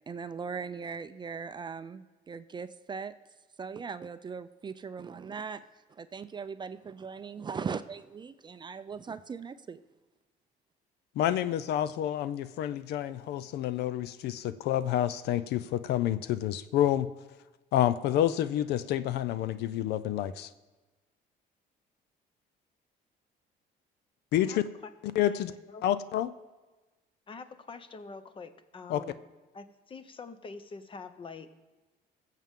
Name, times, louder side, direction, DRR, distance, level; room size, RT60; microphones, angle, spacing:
voice 1, 0.1-3.1 3.6-5.6 5.9-9.8, right 5 dB, 25° right, 12 dB, 0.4 m, -39 dB
voice 2, 11.2-17.1 17.7-20.5 24.3-24.6 25.2-25.5 25.8-26.3 28.9-29.0, left 12 dB, 75° left, 14 dB, 0.5 m, -28 dB
voice 3, 25.2-25.9 27.3-29.2 29.5-31.5, left 4 dB, 30° left, 10 dB, 0.8 m, -45 dB
19.5 x 7.5 x 3.7 m, 1.2 s
cardioid pair, 110°, 17 cm